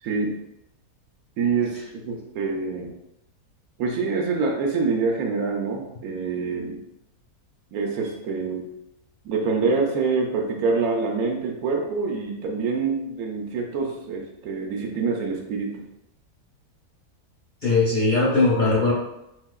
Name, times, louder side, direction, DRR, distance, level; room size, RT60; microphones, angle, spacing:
voice 1, 0.0-0.4 1.4-2.9 3.8-6.9 7.7-8.7 9.2-15.8, right 4 dB, 75° right, 1 dB, 1.1 m, -26 dB
voice 2, 17.6-18.9, left 3 dB, 45° left, -6 dB, 0.7 m, -19 dB
4.0 x 2.8 x 2.3 m, 0.85 s
omnidirectional pair, 1.6 m